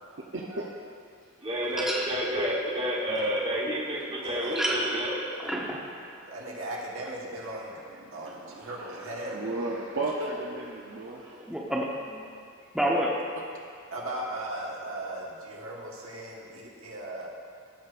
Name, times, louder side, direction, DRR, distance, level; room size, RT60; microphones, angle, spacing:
voice 1, 0.1-0.7 6.1-6.2 7.2-7.4 7.7-11.4 12.6-12.7, right 2 dB, 65° right, -3 dB, 0.7 m, -36 dB
voice 2, 1.4-5.1 11.4-11.5, equal, 25° right, -4 dB, 1.2 m, -30 dB
voice 3, 4.2-4.6 6.3-7.8 8.1-9.4 10.2-10.3 13.9-17.3, right 1 dB, 80° right, -3 dB, 1.4 m, -37 dB
voice 4, 5.4-5.8 11.5-12.3 12.7-13.1, right 1 dB, 5° right, -4 dB, 0.7 m, -28 dB
15.0 x 6.4 x 2.5 m, 2.3 s
head